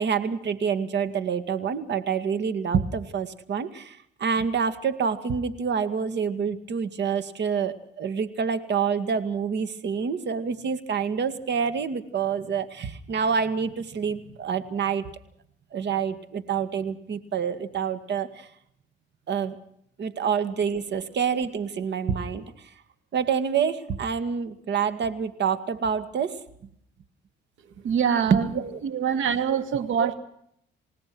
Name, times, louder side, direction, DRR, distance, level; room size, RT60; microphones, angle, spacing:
voice 1, 0.0-15.1 15.7-18.5 19.3-19.6 20.0-22.5 23.1-26.4 28.3-28.8 29.4-29.6 30.0-30.1, right 6 dB, 60° right, 12 dB, 2.1 m, -27 dB
voice 2, 27.8-28.5 28.8-30.1, right 7 dB, 80° right, 10 dB, 2.4 m, -24 dB
29.0 x 17.5 x 6.2 m, 0.71 s
cardioid pair, 90°, 20 cm